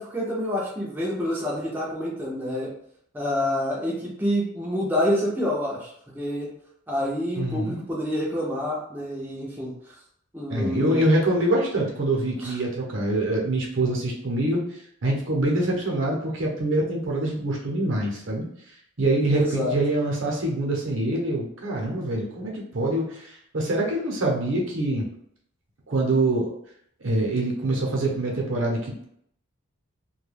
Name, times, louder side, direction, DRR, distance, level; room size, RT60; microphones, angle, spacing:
voice 1, 0.0-2.7 3.1-6.5 6.9-9.7 10.3-11.0 12.4-12.6 19.3-19.8, left 1 dB, 10° right, -5 dB, 0.5 m, -27 dB
voice 2, 7.4-7.8 10.5-14.6 15.0-18.4 19.0-25.1 25.9-26.5 27.0-29.0, right 1 dB, 65° right, -1 dB, 0.8 m, -25 dB
2.3 x 2.2 x 3.3 m, 0.68 s
head